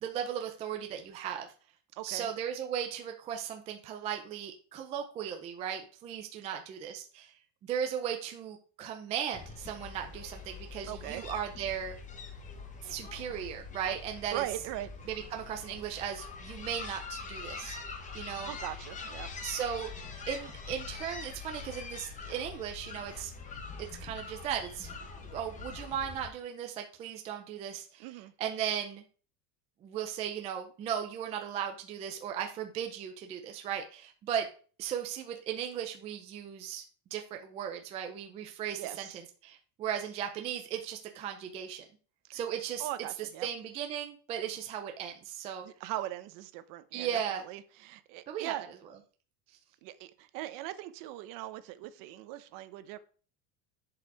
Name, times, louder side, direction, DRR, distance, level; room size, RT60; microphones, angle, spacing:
voice 1, 0.0-1.5 2.0-7.3 7.6-12.0 12.8-14.5 15.1-18.5 19.4-19.9 20.3-23.3 23.8-24.9 25.2-28.1 28.4-29.0 29.8-34.5 34.8-36.8 37.1-39.1 39.4-41.9 42.3-42.9 43.2-45.7 46.9-47.4 48.3-48.5, right 9 dB, 15° right, 0.3 m, -37 dB
voice 2, 1.9-2.3 10.8-11.2 14.3-14.9 18.2-19.3 28.0-28.3 38.8-39.2 42.3-42.4 42.8-43.5 45.6-48.6 49.8-53.0, right 14 dB, 45° right, 0.8 m, -40 dB
sound 1, 9.3-26.3, left 4 dB, 15° left, 1.0 m, -44 dB
10.5 x 4.9 x 4.6 m
cardioid pair, 170°, 44 cm